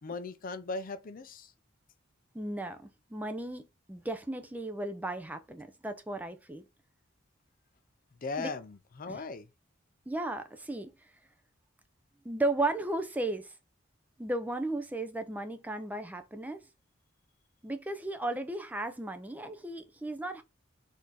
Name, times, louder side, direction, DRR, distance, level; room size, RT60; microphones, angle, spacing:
voice 1, 0.0-1.5 8.2-9.5, left 3 dB, 45° left, 0.5 m, -38 dB
voice 2, 2.3-6.6 8.4-8.5 9.1-9.2 10.1-10.9 12.2-13.5 14.2-16.6 17.6-20.4, right 2 dB, 10° right, 0.5 m, -35 dB
4.2 x 2.7 x 4.5 m
head